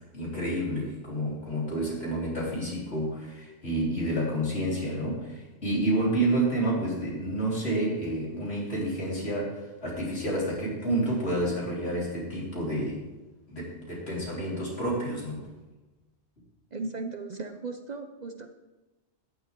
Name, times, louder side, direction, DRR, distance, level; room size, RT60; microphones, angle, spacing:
voice 1, 0.1-13.0 13.5-15.5, right 1 dB, 70° left, -5 dB, 4.0 m, -29 dB
voice 2, 16.7-18.5, right 3 dB, 45° right, 6 dB, 0.7 m, -36 dB
14.0 x 10.5 x 3.7 m, 1.1 s
omnidirectional pair, 1.1 m